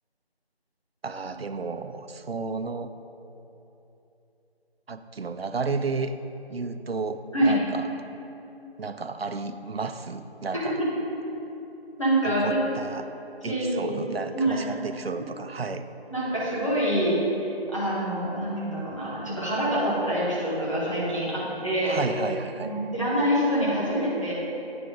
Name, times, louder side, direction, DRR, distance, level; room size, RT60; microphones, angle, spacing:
voice 1, 1.0-2.9 4.9-6.1 6.5-7.8 8.8-10.8 12.2-13.1 13.4-15.9 21.8-22.7, right 4 dB, 70° right, 10 dB, 0.5 m, -32 dB
voice 2, 12.0-12.6 13.4-13.9 14.3-14.7 16.1-22.0 22.6-24.3, right 1 dB, 30° left, -9 dB, 1.5 m, -26 dB
9.4 x 3.5 x 5.1 m, 3.0 s
figure-of-eight pair, 175°, 32 cm